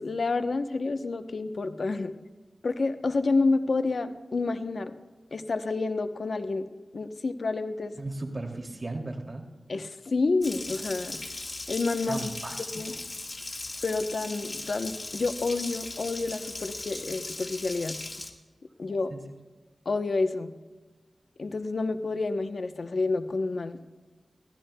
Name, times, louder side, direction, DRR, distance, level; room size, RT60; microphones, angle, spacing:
voice 1, 0.0-2.1 2.6-4.9 5.3-6.6 6.9-7.9 9.7-11.2 11.7-12.3 12.7-12.9 13.8-18.0 18.8-19.1 19.9-20.5 21.4-23.8, left 3 dB, 70° left, 9 dB, 0.8 m, -29 dB
voice 2, 8.0-9.4 12.1-12.6 19.1-19.2, right 2 dB, 40° right, 1 dB, 2.6 m, -35 dB
Water tap faucet, 10.4-18.3, left 2 dB, 45° left, 1.6 m, -38 dB
22.5 x 15.5 x 2.2 m, 1.3 s
cardioid pair, 50°, 0 cm